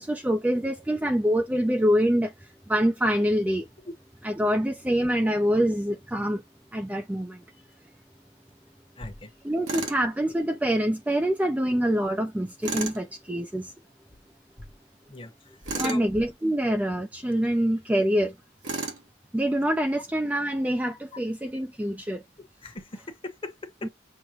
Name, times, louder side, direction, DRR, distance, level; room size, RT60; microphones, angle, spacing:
voice 1, 0.0-2.3 2.7-3.7 4.2-6.4 6.7-7.4 9.4-13.7 15.7-18.3 19.3-22.2 23.8-23.9, equal, 10° right, 0.4 m, -25 dB
voice 2, 9.0-9.3 14.6-14.7 15.1-16.0 18.2-18.3 22.6-23.9, left 2 dB, 30° left, 1.0 m, -39 dB
Tools, 9.7-10.0 12.6-13.0 15.6-16.0 18.6-19.1, right 3 dB, 85° right, 1.3 m, -32 dB
6.3 x 2.1 x 2.9 m
head